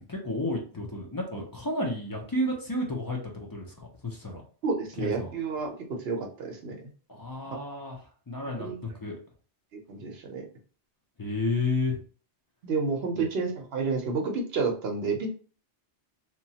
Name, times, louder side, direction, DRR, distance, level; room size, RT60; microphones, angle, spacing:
voice 1, 0.0-4.4 5.0-5.3 7.1-9.2 11.2-12.0 13.1-13.3, left 2 dB, 30° left, -1 dB, 0.4 m, -32 dB
voice 2, 4.6-6.8 7.5-7.6 8.6-8.8 9.9-10.4 12.6-15.3, right 4 dB, 65° right, 2 dB, 0.9 m, -30 dB
2.9 x 2.2 x 2.7 m, 0.40 s
omnidirectional pair, 1.2 m